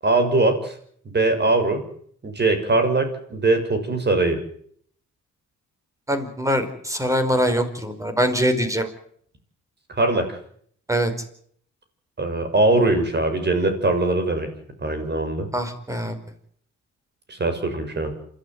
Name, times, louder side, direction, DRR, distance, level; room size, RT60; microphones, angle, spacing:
voice 1, 0.0-0.7 1.0-1.8 2.2-4.4 9.9-10.4 12.2-14.5 14.8-15.5 17.3-18.1, right 2 dB, 35° right, 7 dB, 6.7 m, -21 dB
voice 2, 6.1-8.9 10.9-11.1 15.5-16.1, equal, 10° right, 9 dB, 4.9 m, -23 dB
27.5 x 13.5 x 9.5 m, 0.62 s
cardioid pair, 90°, 30 cm